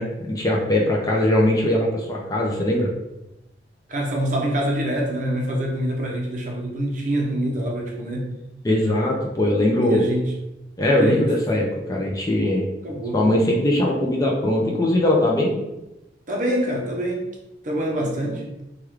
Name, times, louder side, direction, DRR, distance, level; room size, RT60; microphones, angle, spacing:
voice 1, 0.0-2.9 8.6-10.0 10.8-12.7 13.1-15.6 18.2-18.4, left 1 dB, 20° left, -2 dB, 0.4 m, -21 dB
voice 2, 3.9-8.4 9.8-10.2 11.0-11.3 12.8-13.2 16.3-17.3 17.6-18.4, right 1 dB, 45° right, 0 dB, 0.6 m, -25 dB
3.4 x 2.3 x 3.1 m, 0.96 s
head